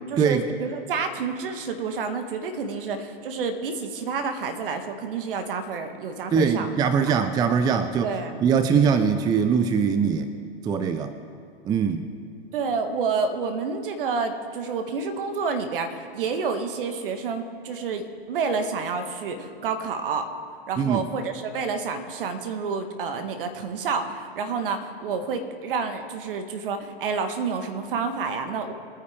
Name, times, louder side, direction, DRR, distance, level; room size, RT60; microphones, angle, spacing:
voice 1, 0.1-6.8 7.1-7.2 8.0-8.4 12.5-20.3 20.7-28.7, right 5 dB, 60° right, 7 dB, 1.6 m, -29 dB
voice 2, 6.3-8.1 8.4-10.3 10.6-11.1 11.7-12.1 20.8-21.0, right 6 dB, 15° right, 10 dB, 0.5 m, -22 dB
24.0 x 9.4 x 3.6 m, 2.3 s
hypercardioid pair, 110°, 31 cm